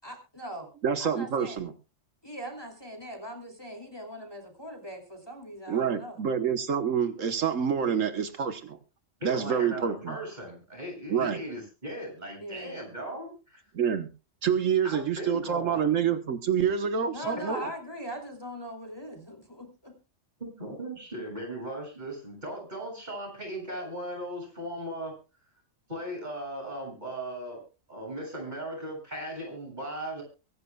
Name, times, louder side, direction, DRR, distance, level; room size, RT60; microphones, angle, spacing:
voice 1, 0.0-0.7 1.0-1.6 2.2-6.2 12.4-12.8 17.1-20.0, equal, 20° left, 3 dB, 2.9 m, -41 dB
voice 2, 0.8-1.7 5.7-8.8 9.2-10.2 11.1-11.4 13.7-14.1 14.4-17.7, right 7 dB, 85° right, 9 dB, 1.5 m, -27 dB
voice 3, 9.2-13.6 14.8-15.9 20.4-25.2 25.9-27.6 27.9-30.2, right 1 dB, 35° right, 1 dB, 7.4 m, -37 dB
23.5 x 11.0 x 2.3 m, 0.31 s
omnidirectional pair, 1.3 m